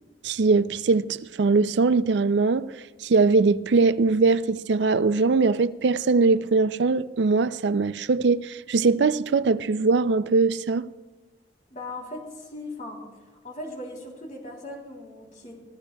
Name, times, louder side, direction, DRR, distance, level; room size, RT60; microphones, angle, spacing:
voice 1, 0.2-2.7 3.0-10.9, right 4 dB, 75° right, 0.4 m, -21 dB
voice 2, 11.7-13.0 13.4-15.6, left 1 dB, 45° left, 3.2 m, -38 dB
23.5 x 15.0 x 2.3 m
head